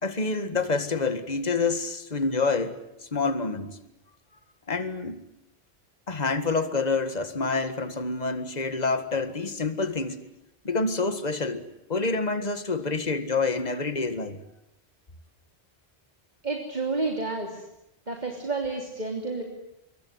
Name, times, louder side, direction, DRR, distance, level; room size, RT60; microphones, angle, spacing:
voice 1, 0.0-3.8 4.7-5.2 6.1-10.2 10.6-14.4, left 3 dB, 40° left, 10 dB, 2.0 m, -27 dB
voice 2, 16.4-17.6 18.1-19.4, right 3 dB, 40° right, 1 dB, 3.4 m, -30 dB
26.0 x 23.5 x 9.7 m, 0.82 s
omnidirectional pair, 1.1 m